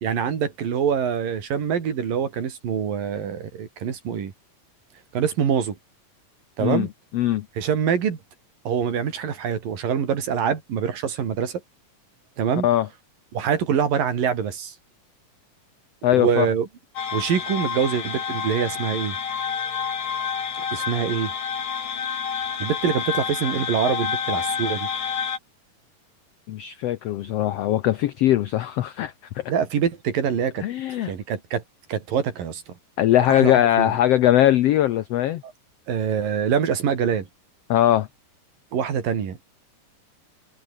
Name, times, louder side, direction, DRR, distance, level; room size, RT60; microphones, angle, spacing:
voice 1, 0.0-4.3 5.1-5.8 6.6-6.9 7.6-8.2 8.7-11.6 12.4-12.7 13.3-14.7 16.2-16.7 17.1-19.2 20.6-21.3 22.6-24.9 29.5-30.6 31.1-31.6 31.9-32.6 33.3-33.9 35.4-35.5 35.9-37.3 38.7-39.4, right 7 dB, 85° right, 4.8 m, -24 dB
voice 2, 7.1-7.5 12.6-12.9 16.0-16.5 26.5-29.4 30.6-31.1 33.0-35.4 37.7-38.1, left 12 dB, 85° left, 1.4 m, -20 dB
sound 1, 17.0-25.4, left 6 dB, 60° left, 4.4 m, -29 dB
omnidirectional pair, 3.9 m